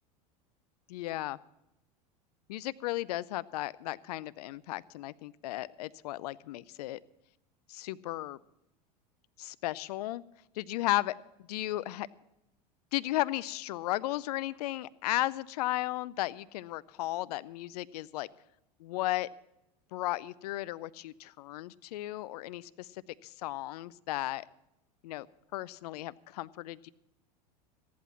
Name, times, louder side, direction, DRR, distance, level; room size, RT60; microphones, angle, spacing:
voice 1, 0.9-1.4 2.5-7.0 7.7-8.4 9.4-10.2 10.6-11.1 11.5-12.1 12.9-18.3 18.8-19.3 19.9-24.4 25.0-25.3 25.5-26.9, left 16 dB, 70° left, 19 dB, 0.5 m, -35 dB
14.5 x 11.0 x 5.7 m, 0.83 s
hypercardioid pair, 95°, 21 cm